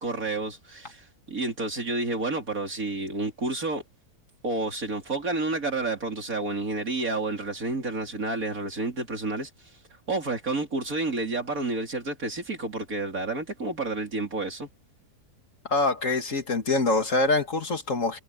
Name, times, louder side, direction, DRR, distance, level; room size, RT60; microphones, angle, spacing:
voice 1, 0.0-3.8 4.4-9.5 10.1-14.7, right 2 dB, 60° right, 4.3 m, -30 dB
voice 2, 15.7-18.2, left 3 dB, 55° left, 2.4 m, -24 dB
omnidirectional pair, 1.7 m